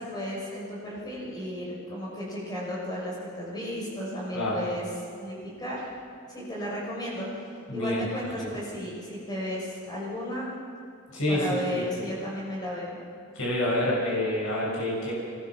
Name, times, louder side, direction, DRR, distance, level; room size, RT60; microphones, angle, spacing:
voice 1, 0.0-4.9 5.2-5.9 6.3-10.5 11.3-12.9, equal, 20° left, -4 dB, 6.1 m, -34 dB
voice 2, 7.7-8.0 8.4-8.5 11.1-11.8 13.3-15.1, left 1 dB, 65° left, -5 dB, 6.5 m, -27 dB
24.0 x 19.5 x 6.1 m, 2.3 s
head